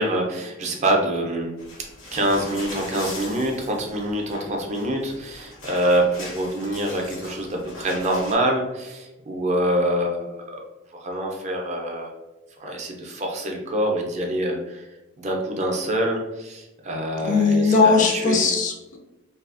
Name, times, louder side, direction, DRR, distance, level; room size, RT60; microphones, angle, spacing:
voice 1, 0.0-1.5 2.1-10.5 11.0-12.1 12.6-14.9 15.2-18.4, right 1 dB, 35° right, 1 dB, 0.4 m, -25 dB
sound 1, 1.6-8.3, left 2 dB, 85° left, 0.8 m, -40 dB
voice 2, 17.2-19.0, left 4 dB, 40° left, 1 dB, 0.4 m, -19 dB
2.6 x 2.3 x 2.4 m, 1.0 s
head